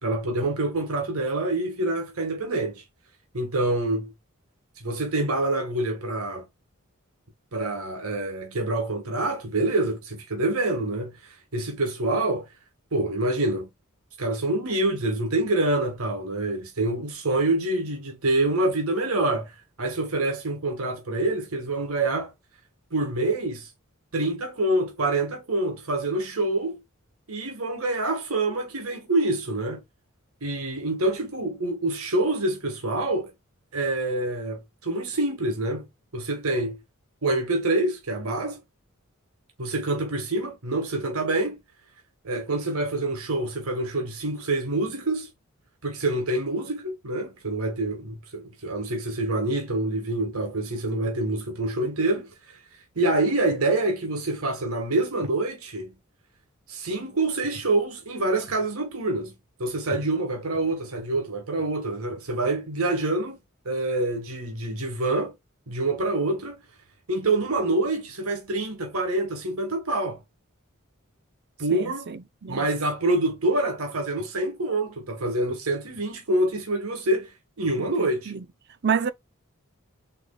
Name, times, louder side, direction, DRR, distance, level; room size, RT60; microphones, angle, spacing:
voice 1, 0.0-2.8 3.3-4.1 4.8-6.5 7.5-12.5 12.9-13.7 14.2-22.3 22.9-23.7 24.1-26.8 27.3-29.8 30.4-33.3 33.7-35.9 36.1-36.8 37.2-38.6 39.6-41.6 42.2-45.3 45.8-52.6 52.9-55.9 56.7-59.3 59.6-63.4 63.6-65.3 65.7-66.6 67.1-70.2 71.6-72.1 72.5-77.3 77.6-78.3, right 2 dB, 85° right, 1.5 m, -26 dB
voice 2, 71.7-72.7 77.8-78.4 78.8-79.1, right 6 dB, 50° right, 0.6 m, -29 dB
7.0 x 3.2 x 2.2 m
head